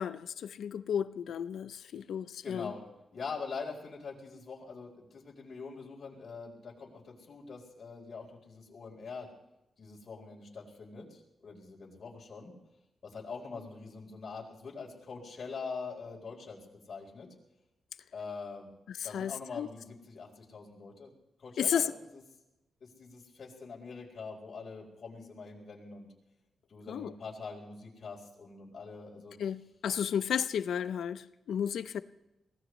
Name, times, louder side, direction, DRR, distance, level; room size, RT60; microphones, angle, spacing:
voice 1, 0.0-2.7 18.9-19.7 21.6-21.8 26.9-27.1 29.4-32.0, left 8 dB, 80° left, 0.6 m, -33 dB
voice 2, 2.4-9.3 9.8-12.5 13.0-17.3 18.1-18.7 19.0-21.1 21.4-21.9 22.8-26.1 26.7-29.4, left 4 dB, 50° left, 4.3 m, -43 dB
23.5 x 18.0 x 3.2 m
cardioid pair, 105°, 0 cm